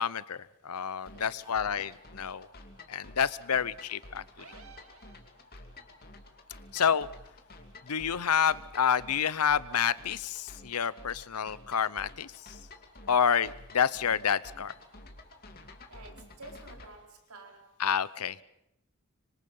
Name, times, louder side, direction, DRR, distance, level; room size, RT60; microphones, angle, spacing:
voice 1, 0.0-2.5 2.9-4.4 6.7-7.1 7.9-12.6 13.1-14.7 17.8-18.4, left 7 dB, 85° left, 18 dB, 0.8 m, -29 dB
sound 1, 1.1-16.9, left 2 dB, 45° left, 2.7 m, -51 dB
voice 2, 1.1-1.4 14.9-15.0 15.9-17.8, right 2 dB, 80° right, 2 dB, 4.6 m, -51 dB
sound 2, 4.4-5.8, right 5 dB, 65° right, 2.4 m, -54 dB
25.5 x 24.5 x 5.6 m, 0.81 s
head